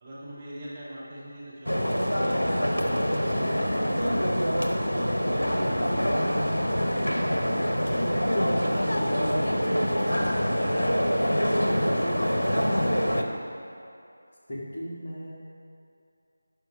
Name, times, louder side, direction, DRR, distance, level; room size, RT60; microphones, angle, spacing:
voice 1, 0.0-1.8 2.1-3.2 3.8-4.6 4.9-7.4 7.9-9.8 10.1-11.3 11.6-11.8, right 1 dB, 20° right, -9 dB, 1.7 m, -41 dB
sound 1, 1.6-13.2, equal, 80° left, 0.9 m, -25 dB
voice 2, 3.3-3.9 14.5-15.3, equal, 40° left, -6 dB, 1.8 m, -37 dB
9.4 x 5.9 x 5.0 m, 2.6 s
figure-of-eight pair, 165°, 0 cm